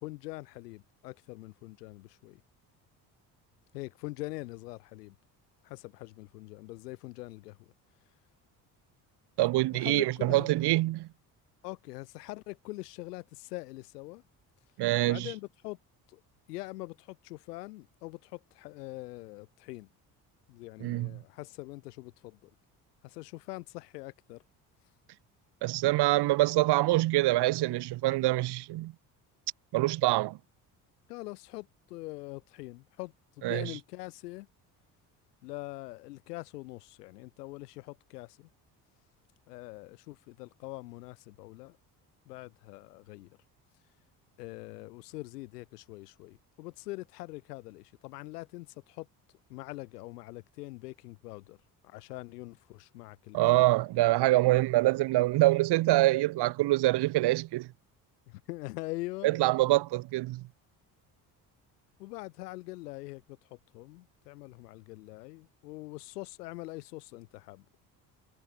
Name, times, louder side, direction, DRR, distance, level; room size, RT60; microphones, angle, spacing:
voice 1, 0.0-2.4 3.7-5.1 5.6-7.7 9.7-10.6 11.6-14.2 15.1-15.8 16.1-16.2 16.5-19.9 20.5-22.5 23.0-24.4 31.1-34.5 35.4-38.5 39.5-41.8 42.3-43.3 44.4-49.1 49.5-51.6 51.8-53.6 58.3-59.4 62.0-67.6, left 20 dB, 85° left, 1.4 m, -43 dB
voice 2, 9.4-11.1 14.8-15.3 20.8-21.2 25.6-28.9 29.7-30.4 33.4-33.7 53.3-57.7 59.2-60.5, right 18 dB, 60° right, 0.9 m, -25 dB
hypercardioid pair, 60°, 46 cm